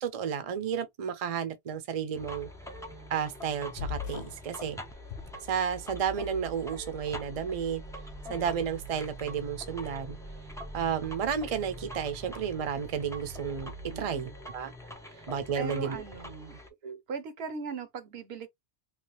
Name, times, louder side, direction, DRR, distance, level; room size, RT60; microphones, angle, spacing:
voice 1, 0.0-2.5 3.1-4.8 5.5-7.8 8.3-10.2 10.7-14.7 15.3-16.0 16.8-17.0, right 7 dB, 40° right, 0.6 m, -32 dB
sound 1, 2.1-16.7, right 1 dB, 5° left, 0.5 m, -44 dB
sound 2, 3.8-4.5 5.0-6.0, left 7 dB, 85° left, 0.9 m, -39 dB
voice 2, 13.9-14.3 15.0-16.6 17.1-18.5, right 5 dB, 75° right, 1.0 m, -40 dB
3.2 x 2.3 x 3.0 m
omnidirectional pair, 1.1 m